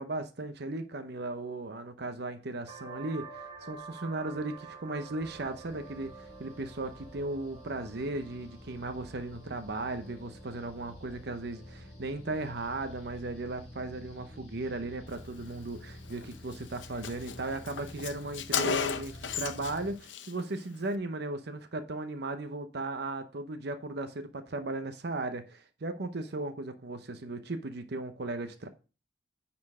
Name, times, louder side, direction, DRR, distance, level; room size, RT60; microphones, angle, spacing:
voice 1, 0.0-28.7, right 2 dB, 60° right, 0.8 m, -36 dB
sound 1, 2.7-14.0, right 4 dB, 25° right, 2.2 m, -50 dB
sound 2, 5.2-20.0, left 1 dB, 35° left, 2.8 m, -49 dB
Car, 16.1-16.2 16.5-16.6 16.8-19.8 20.0-20.3, left 6 dB, 80° left, 0.7 m, -33 dB
9.8 x 4.3 x 4.9 m
head